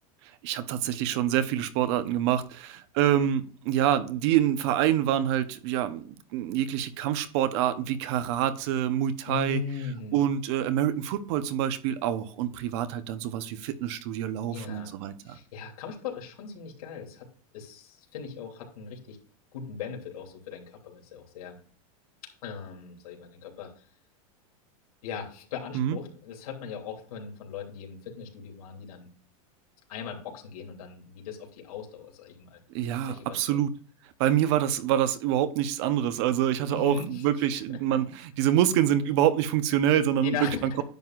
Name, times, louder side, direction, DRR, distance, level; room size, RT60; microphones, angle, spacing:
voice 1, 0.4-9.6 10.1-15.4 25.7-26.0 32.7-33.7 34.2-40.3, right 11 dB, 50° right, 0.9 m, -26 dB
voice 2, 9.3-10.2 13.6-13.7 14.5-14.9 15.2-17.3 17.5-19.2 19.5-21.6 22.4-23.8 25.0-29.1 29.9-32.6 33.0-33.6 36.7-37.2 37.5-37.6 37.9-38.0 40.2-40.8, left 6 dB, 85° left, 3.0 m, -39 dB
10.5 x 7.8 x 2.5 m
supercardioid pair, 165°, 18 cm